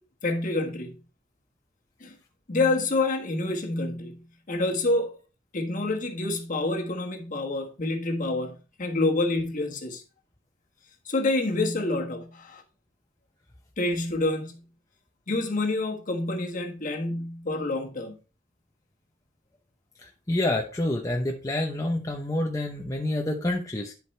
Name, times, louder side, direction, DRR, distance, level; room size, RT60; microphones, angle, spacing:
voice 1, 0.2-1.0 2.0-2.1 2.5-4.2 4.5-5.2 5.5-10.0 11.1-12.6 13.8-14.6 15.3-18.1, left 2 dB, 40° left, 1.4 m, -27 dB
voice 2, 20.3-23.9, left 1 dB, 15° left, 0.8 m, -27 dB
11.0 x 5.0 x 3.2 m
head